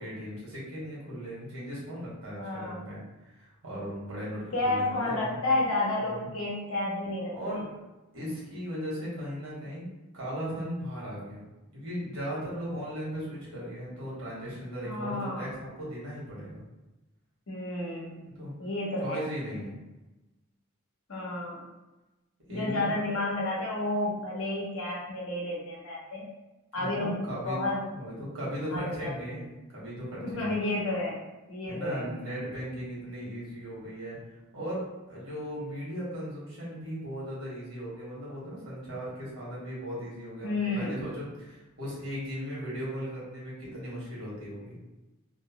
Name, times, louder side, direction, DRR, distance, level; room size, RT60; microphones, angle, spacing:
voice 1, 0.0-5.4 6.0-6.3 7.3-7.6 8.1-9.9 10.1-11.4 11.7-16.6 18.3-18.5 19.0-19.8 22.5-23.1 26.7-27.6 27.9-30.6 31.6-34.2 34.5-44.8, equal, 90° right, -7 dB, 1.4 m, -37 dB
voice 2, 2.4-2.9 4.5-7.3 14.8-15.5 17.5-18.2 18.6-19.2 21.1-21.6 22.5-26.2 26.7-27.2 27.4-27.8 28.7-29.1 30.2-31.2 31.5-32.1 40.4-41.0, left 2 dB, 75° left, -4 dB, 1.0 m, -31 dB
3.1 x 2.0 x 2.8 m, 1.1 s
head